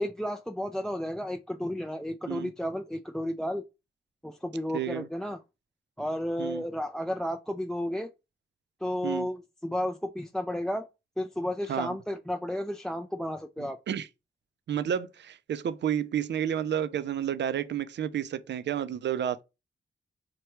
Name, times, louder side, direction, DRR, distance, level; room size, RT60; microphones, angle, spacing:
voice 1, 0.0-3.6 4.2-5.4 6.0-8.1 8.8-10.9 11.2-13.8, left 1 dB, 5° left, 0.3 m, -32 dB
voice 2, 4.7-5.1 6.4-6.6 9.0-9.3 11.7-11.9 13.6-14.1 14.7-19.4, right 9 dB, 60° right, 0.4 m, -31 dB
3.2 x 2.2 x 2.9 m
supercardioid pair, 40°, 20 cm